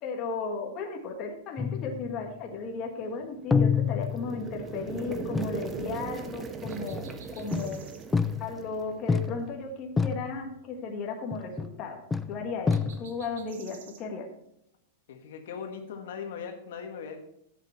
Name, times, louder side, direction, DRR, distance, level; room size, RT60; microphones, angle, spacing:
voice 1, 0.0-7.8 8.4-12.0 12.3-14.3, left 4 dB, 30° left, 1 dB, 1.7 m, -35 dB
sound 1, 1.6-2.4 3.5-4.7 5.3-5.7 6.6-7.1 7.5-8.7 9.1-9.7 10.0-10.5 11.3-11.8 12.1-13.3, left 5 dB, 10° left, 0.4 m, -29 dB
sound 2, 3.4-9.5, right 5 dB, 15° right, 0.7 m, -39 dB
sound 3, 6.7-8.1 12.7-14.0, right 7 dB, 85° right, 1.6 m, -52 dB
voice 2, 15.1-17.2, left 6 dB, 70° left, 4 dB, 1.6 m, -39 dB
10.5 x 8.2 x 4.4 m, 0.76 s
supercardioid pair, 160°, 0 cm